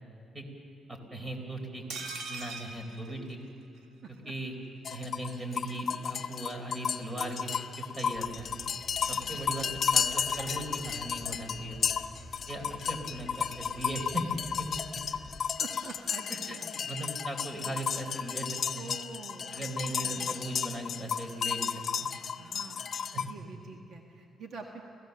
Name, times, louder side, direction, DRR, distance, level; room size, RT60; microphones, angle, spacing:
voice 1, 0.9-1.8 2.3-3.4 4.3-4.5 4.9-8.5 9.1-9.7 9.9-11.8 12.5-14.7 16.3-18.5 18.7-18.9 19.5-21.7 22.0-22.1 23.1-23.2, right 1 dB, 25° right, 4 dB, 4.1 m, -38 dB
sound 1, 1.9-3.9 4.2-4.3 4.5-4.6, right 3 dB, 80° right, 2.1 m, -41 dB
sound 2, 4.8-23.3, left 7 dB, 55° left, 1.0 m, -33 dB
sound 3, 8.1-15.4, left 1 dB, 5° right, 2.6 m, -51 dB
voice 2, 9.1-9.4 15.6-16.7 18.8-19.7 20.0-20.4 22.4-24.8, right 4 dB, 60° right, 2 dB, 1.6 m, -46 dB
29.5 x 16.0 x 6.9 m, 2.5 s
cardioid pair, 90°, 0 cm